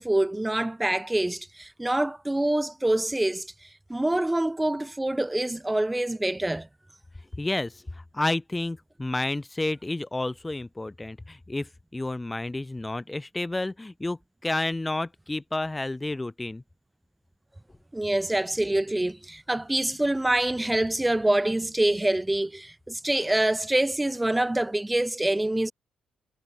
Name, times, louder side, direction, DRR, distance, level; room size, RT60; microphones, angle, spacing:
voice 1, 0.0-3.5 3.9-6.7 17.9-25.7, right 1 dB, 10° right, 4.8 m, -25 dB
voice 2, 7.4-16.6, left 2 dB, 15° left, 2.5 m, -30 dB
cardioid pair, 90°, 0 cm